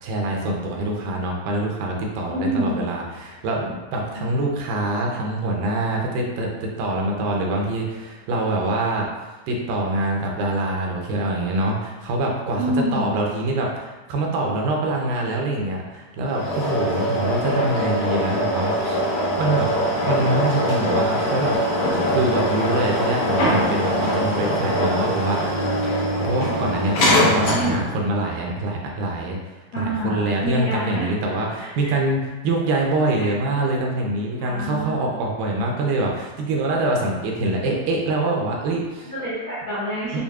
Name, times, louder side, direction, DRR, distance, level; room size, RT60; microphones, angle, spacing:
voice 1, 0.0-9.1 9.5-19.0 19.4-19.7 20.0-21.7 22.1-25.7 26.2-29.4 29.8-39.1 40.1-40.2, right 2 dB, 85° right, 0 dB, 2.3 m, -24 dB
voice 2, 2.3-2.9 4.2-4.3 12.6-13.1 27.1-27.9 29.7-31.3 31.8-31.9 33.1-33.3 34.4-34.9 39.0-40.2, equal, 55° left, -13 dB, 1.4 m, -27 dB
sound 1, 16.3-28.0, equal, 70° left, 1.6 m, -22 dB
6.6 x 2.3 x 2.3 m, 1.2 s
omnidirectional pair, 3.8 m